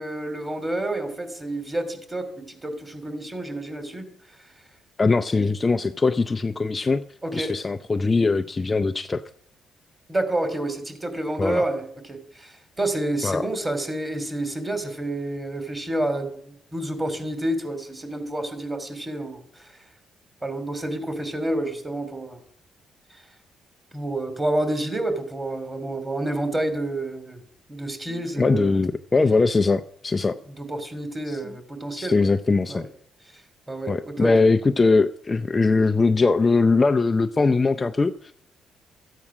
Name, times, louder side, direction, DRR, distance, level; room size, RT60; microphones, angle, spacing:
voice 1, 0.0-4.0 5.3-5.5 7.2-7.5 10.1-19.8 20.4-22.4 23.1-23.2 23.9-27.4 27.7-28.8 30.6-32.3 32.7-32.8 33.7-34.3, right 1 dB, 20° right, 8 dB, 2.8 m, -29 dB
voice 2, 5.0-7.0 7.3-9.2 11.4-11.6 13.2-13.5 28.4-30.4 31.3-31.4 32.0-32.9 33.9-38.3, left 3 dB, 25° left, 7 dB, 0.5 m, -21 dB
13.5 x 8.5 x 6.2 m, 0.66 s
cardioid pair, 90°, 0 cm